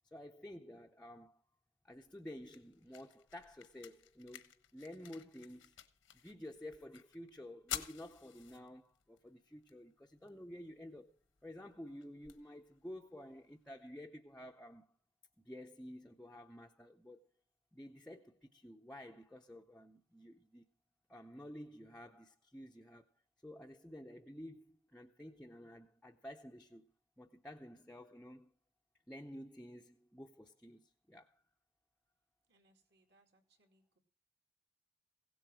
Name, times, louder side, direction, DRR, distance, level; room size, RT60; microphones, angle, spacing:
voice 1, 0.1-1.4 1.8-5.8 6.2-11.1 11.4-14.9 15.4-17.2 17.7-20.6 21.1-23.0 23.4-28.5 29.1-31.4, left 1 dB, 5° left, 0.6 m, -52 dB
sound 1, 1.9-13.9, left 10 dB, 85° left, 1.2 m, -53 dB
voice 2, 32.5-34.0, right 2 dB, 60° right, 2.4 m, -73 dB
16.5 x 7.9 x 6.2 m
head